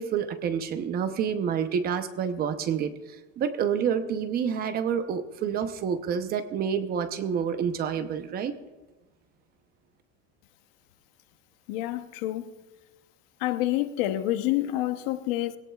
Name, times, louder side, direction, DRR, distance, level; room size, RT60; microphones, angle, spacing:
voice 1, 0.0-8.5, right 7 dB, 30° right, 0.8 m, -28 dB
voice 2, 11.7-12.5 13.4-15.6, left 15 dB, 65° left, 0.9 m, -28 dB
21.5 x 17.5 x 2.4 m
cardioid pair, 165°, 31 cm